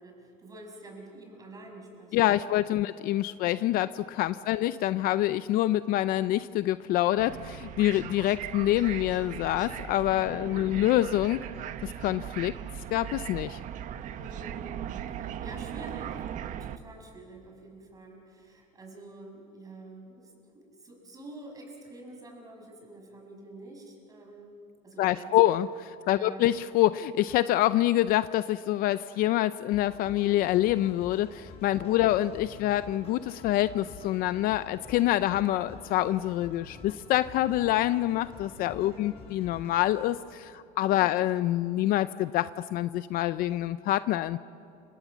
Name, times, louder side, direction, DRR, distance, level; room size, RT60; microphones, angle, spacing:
voice 1, 0.0-2.5 3.3-3.4 4.4-4.6 10.3-10.8 14.1-14.7 15.1-24.6 24.8-25.7 26.1-26.4 31.8-32.2 38.9-39.2 41.0-41.2, right 2 dB, 20° right, 2 dB, 6.5 m, -48 dB
voice 2, 2.1-11.4 11.8-12.5 12.9-13.6 25.0-25.7 26.1-44.4, left 14 dB, 50° left, 14 dB, 0.6 m, -26 dB
sound 1, 7.2-16.8, right 10 dB, 40° right, 1.1 m, -39 dB
sound 2, 29.7-40.2, left 3 dB, 30° left, 6.7 m, -48 dB
30.0 x 27.0 x 7.4 m, 2.7 s
cardioid pair, 150°, 20 cm